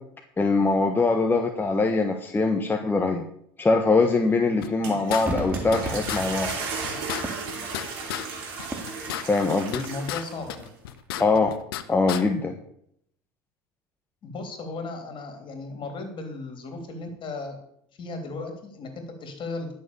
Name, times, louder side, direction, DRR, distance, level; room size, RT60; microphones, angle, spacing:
voice 1, 0.4-3.2 3.6-6.5 9.2-9.9 11.2-11.6 11.9-12.6, left 3 dB, 15° left, 3 dB, 1.3 m, -22 dB
sound 1, 4.6-5.8 6.1-6.2 6.5-6.6 6.8-8.3 8.6-10.2 10.5-11.8 12.1-12.2, left 12 dB, 85° left, 0.8 m, -33 dB
sound 2, 4.6-10.7, right 5 dB, 75° right, 2.9 m, -35 dB
Crowd / Fireworks, 5.3-10.6 10.9-11.0, right 2 dB, 10° right, 2.3 m, -37 dB
voice 2, 9.8-10.7 14.2-17.6 18.0-19.7, left 3 dB, 45° left, 5 dB, 3.2 m, -36 dB
11.0 x 6.8 x 6.9 m, 0.70 s
hypercardioid pair, 90°, 12 cm